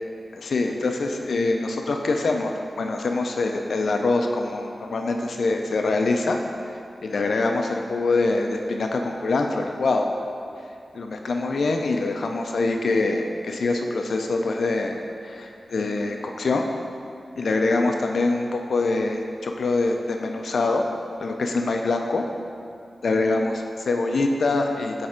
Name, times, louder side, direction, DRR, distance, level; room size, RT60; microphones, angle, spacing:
voice 1, 0.3-6.4 7.0-10.1 10.9-16.7 17.4-20.9 21.2-22.2 23.0-25.1, left 3 dB, 75° left, 3 dB, 0.4 m, -24 dB
6.3 x 3.4 x 5.0 m, 2.4 s
wide cardioid pair, 70°, 0 cm